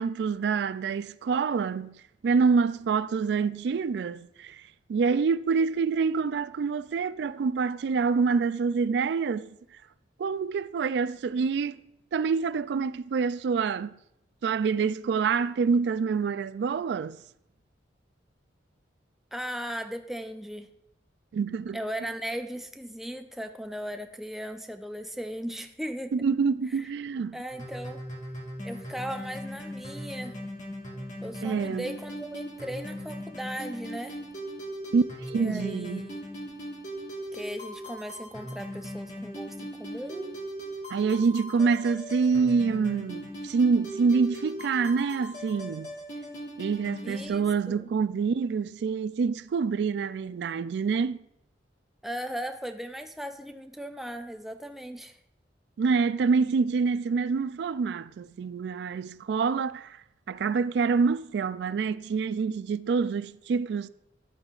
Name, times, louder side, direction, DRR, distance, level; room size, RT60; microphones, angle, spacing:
voice 1, 0.0-4.6 4.9-9.5 10.2-11.8 12.1-13.9 14.4-17.2 21.3-21.8 26.1-27.4 31.4-31.9 34.9-36.1 40.9-45.9 46.6-51.2 55.8-60.0 60.3-63.9, right 5 dB, 65° right, 0.3 m, -26 dB
voice 2, 19.3-20.7 21.7-26.1 26.8-26.9 27.3-28.0 28.6-30.4 31.2-34.2 35.3-36.3 37.3-40.3 47.0-47.9 52.0-55.2, equal, ahead, 0.4 m, -37 dB
sound 1, 27.5-47.3, equal, 40° left, 1.6 m, -39 dB
11.0 x 8.7 x 2.4 m
head